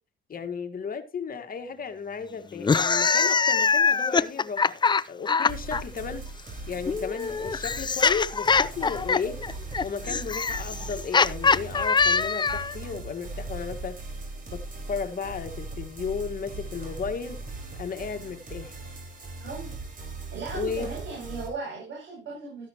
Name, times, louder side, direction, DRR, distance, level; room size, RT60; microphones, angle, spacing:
voice 1, 0.3-4.8 5.1-6.2 6.7-9.4 9.8-14.0 14.5-14.6 14.9-17.4 17.8-18.8 20.5-20.9, left 6 dB, 45° left, 1.7 m, -34 dB
Aukward smile, 2.6-5.8 6.9-12.7, left 5 dB, 20° left, 0.5 m, -23 dB
sound 1, 5.5-21.5, right 3 dB, 45° right, 4.8 m, -39 dB
voice 2, 19.4-19.7 20.3-22.7, right 4 dB, 70° right, 6.8 m, -37 dB
13.5 x 10.5 x 3.0 m
cardioid pair, 90°, 20 cm